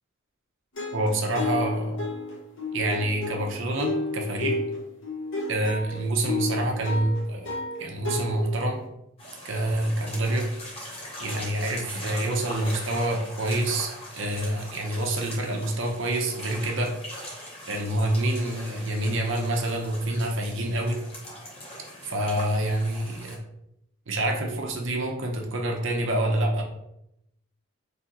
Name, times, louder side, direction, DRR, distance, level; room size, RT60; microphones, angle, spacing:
sound 1, 0.8-8.8, left 2 dB, 60° left, 0.8 m, -32 dB
voice 1, 0.9-2.0 2.7-4.6 5.5-7.5 7.8-8.8 9.4-10.5 11.2-16.9 17.7-21.0 22.0-23.4 24.1-26.6, right 1 dB, 60° right, 1 dB, 0.7 m, -27 dB
sound 2, 9.2-23.4, left 1 dB, 25° left, 0.9 m, -41 dB
3.3 x 2.9 x 3.7 m, 0.82 s
head